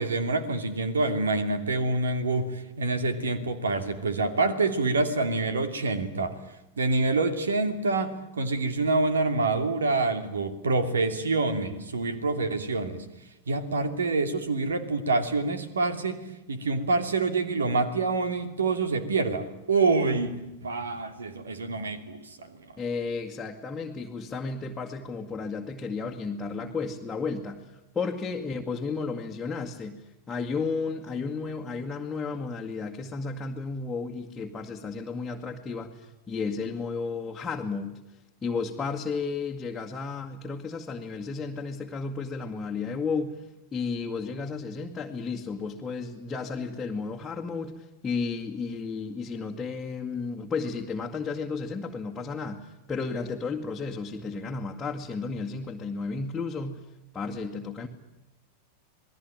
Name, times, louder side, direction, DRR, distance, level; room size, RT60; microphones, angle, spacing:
voice 1, 0.0-6.3 6.8-13.0 13.5-16.2 16.5-22.6, right 3 dB, 70° right, 10 dB, 2.8 m, -26 dB
voice 2, 22.8-38.0 38.4-43.4 43.7-56.9 57.1-57.9, left 4 dB, 15° left, -1 dB, 2.0 m, -33 dB
28.0 x 20.0 x 9.1 m, 0.94 s
figure-of-eight pair, 90°, 0 cm